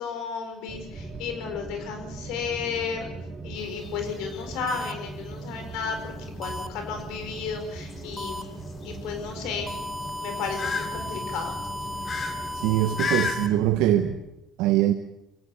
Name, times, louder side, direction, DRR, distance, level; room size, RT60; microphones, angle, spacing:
voice 1, 0.0-3.1 3.4-6.1 6.4-8.5 8.8-9.8 10.2-11.6, left 6 dB, 80° left, 6 dB, 4.7 m, -33 dB
sound 1, 0.7-14.1, right 2 dB, 35° right, 4.7 m, -39 dB
sound 2, 3.6-13.4, left 5 dB, 40° left, 2.6 m, -36 dB
sound 3, 4.7-4.9 6.4-6.7 8.2-8.4 9.7-13.5, left 1 dB, 5° right, 1.4 m, -35 dB
voice 2, 12.6-14.1 14.6-14.9, right 13 dB, 80° right, 6 dB, 1.1 m, -22 dB
23.0 x 17.0 x 7.0 m, 0.88 s
cardioid pair, 110°, 0 cm